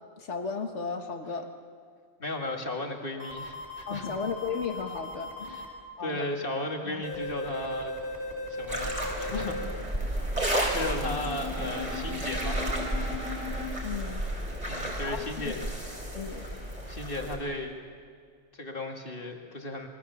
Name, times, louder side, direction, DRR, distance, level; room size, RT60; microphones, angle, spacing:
voice 1, 0.2-1.5 3.9-5.3 6.0-6.3 6.8-7.0 13.8-14.3 15.0-15.7 16.1-16.5, left 5 dB, 75° left, 6 dB, 1.9 m, -35 dB
voice 2, 2.2-4.1 5.4-5.6 6.0-8.0 8.6-9.6 10.7-13.2 14.7-15.6 16.4-16.5 16.9-17.8 18.5-19.9, left 2 dB, 50° left, 2 dB, 2.5 m, -35 dB
sound 1, 3.2-5.7 7.0-9.7 11.0-13.7, left 2 dB, 65° right, 4.5 m, -38 dB
sound 2, 8.7-17.4, right 1 dB, 35° right, 4.1 m, -32 dB
27.0 x 22.0 x 7.1 m, 2.1 s
omnidirectional pair, 1.2 m